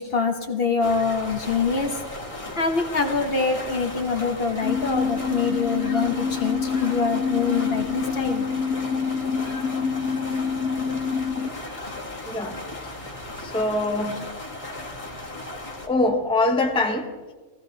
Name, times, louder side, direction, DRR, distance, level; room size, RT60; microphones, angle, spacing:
voice 1, 0.0-2.0 2.5-8.5, left 4 dB, 50° left, 5 dB, 1.3 m, -25 dB
sound 1, 0.8-15.9, left 1 dB, 25° left, 1.9 m, -36 dB
sound 2, 4.6-11.5, left 5 dB, 85° left, 1.2 m, -26 dB
voice 2, 12.3-12.6 13.3-14.2 15.9-17.3, left 2 dB, 5° left, 4 dB, 0.8 m, -24 dB
17.5 x 15.5 x 4.0 m, 1.3 s
omnidirectional pair, 1.4 m